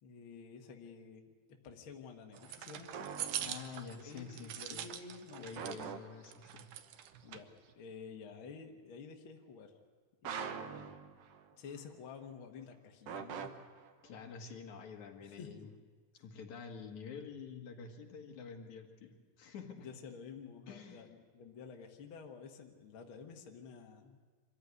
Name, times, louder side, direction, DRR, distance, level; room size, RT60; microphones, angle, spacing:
voice 1, 0.0-3.1 3.9-5.8 7.2-7.5 7.8-9.7 10.2-10.9 11.6-13.6 15.2-15.7 16.1-16.2 19.8-24.2, left 5 dB, 50° left, 2 dB, 1.8 m, -51 dB
sound 1, 2.3-5.9 6.2-7.4, right 10 dB, 85° right, 2.6 m, -44 dB
sound 2, 2.9-4.0 5.6-6.6 10.2-11.8 13.1-14.3, right 7 dB, 65° right, 1.7 m, -44 dB
voice 2, 3.4-4.9 5.4-6.7 14.0-15.7 16.2-19.9 20.7-21.0, left 6 dB, 65° left, 3 dB, 2.9 m, -48 dB
24.5 x 14.5 x 9.6 m, 1.5 s
omnidirectional pair, 3.7 m